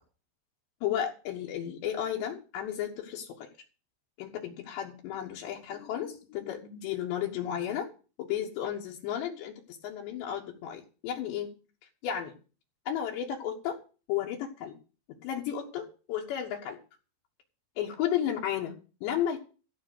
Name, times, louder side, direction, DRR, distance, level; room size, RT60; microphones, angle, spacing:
voice 1, 0.8-3.5 4.2-7.9 8.2-9.5 9.8-11.5 12.0-12.3 12.9-13.8 14.1-14.7 15.2-16.8 17.8-18.7 19.0-19.4, left 10 dB, 70° left, 0 dB, 3.3 m, -33 dB
15.0 x 5.5 x 8.0 m, 0.36 s
omnidirectional pair, 5.6 m